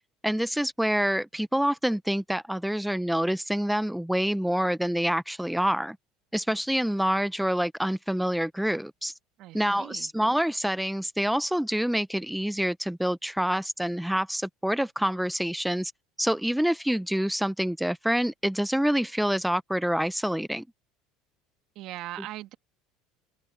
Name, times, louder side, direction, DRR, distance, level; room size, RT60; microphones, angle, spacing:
voice 1, 0.2-6.0 6.3-9.1 9.5-15.9 16.2-20.6, equal, ahead, 0.6 m, -27 dB
voice 2, 9.4-10.1 21.7-22.5, right 15 dB, 60° right, 2.5 m, -40 dB
supercardioid pair, 95°, 0 cm